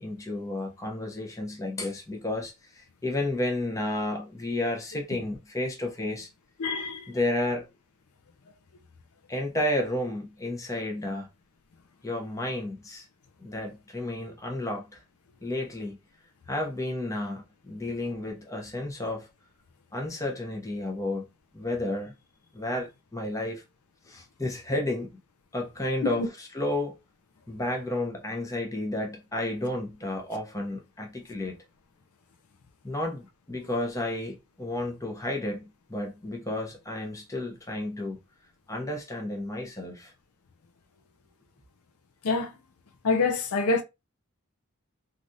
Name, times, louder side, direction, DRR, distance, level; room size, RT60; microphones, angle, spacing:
voice 1, 0.0-6.3 7.1-7.7 9.3-11.3 12.0-13.1 13.4-15.0 15.4-16.0 16.5-19.3 19.9-21.3 21.5-22.1 22.5-23.6 24.1-25.1 25.5-27.0 27.5-31.6 32.8-38.2 38.7-40.1, left 1 dB, 15° left, 0.7 m, -32 dB
voice 2, 6.6-7.0 26.0-26.1 42.2-42.5 43.0-43.8, left 4 dB, 85° left, 0.5 m, -25 dB
3.3 x 2.4 x 2.6 m
head